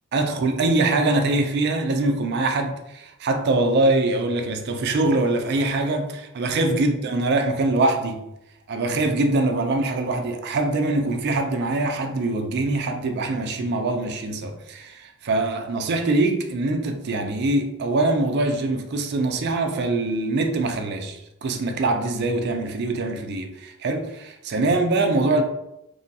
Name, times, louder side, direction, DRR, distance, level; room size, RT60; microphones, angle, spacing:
voice 1, 0.1-8.2 8.7-25.4, right 2 dB, 50° right, 0.3 m, -23 dB
3.0 x 2.2 x 2.7 m
head